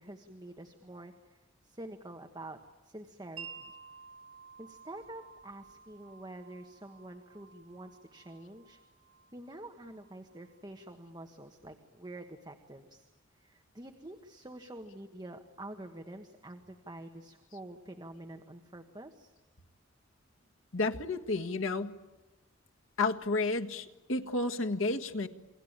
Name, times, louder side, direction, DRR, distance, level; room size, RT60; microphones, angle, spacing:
voice 1, 0.0-1.4 1.6-2.6 2.8-3.7 4.6-8.8 9.3-13.1 13.4-19.3, right 1 dB, 20° right, 5 dB, 1.4 m, -47 dB
Wind chime, 3.4-11.0, right 6 dB, 75° right, 6.0 m, -53 dB
voice 2, 20.7-22.0 23.0-25.3, left 3 dB, 85° left, 5 dB, 1.6 m, -31 dB
29.0 x 23.0 x 8.9 m, 1.1 s
head